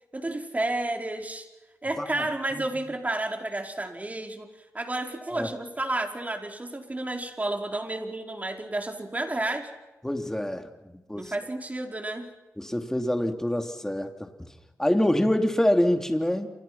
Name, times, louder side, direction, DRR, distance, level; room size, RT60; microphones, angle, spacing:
voice 1, 0.1-1.5 1.8-4.5 4.7-9.7 11.1-12.3, right 2 dB, 25° right, 4 dB, 4.7 m, -31 dB
voice 2, 10.0-11.3 12.6-14.5 14.8-16.5, left 1 dB, 10° left, 5 dB, 3.5 m, -26 dB
28.5 x 28.5 x 6.0 m, 1.0 s
cardioid pair, 55°, 6 cm